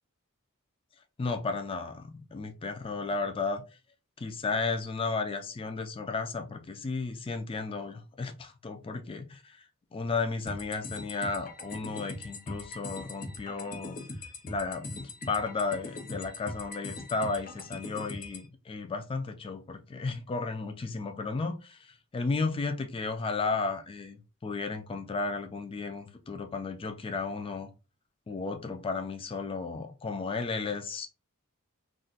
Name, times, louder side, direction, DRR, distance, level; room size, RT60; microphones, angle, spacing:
voice 1, 1.2-3.6 4.2-9.6 9.9-14.0 14.4-27.7 28.3-31.1, left 4 dB, 25° left, 0.3 m, -34 dB
sound 1, 10.5-18.5, left 2 dB, 40° left, 0.7 m, -41 dB
2.4 x 2.1 x 3.9 m
head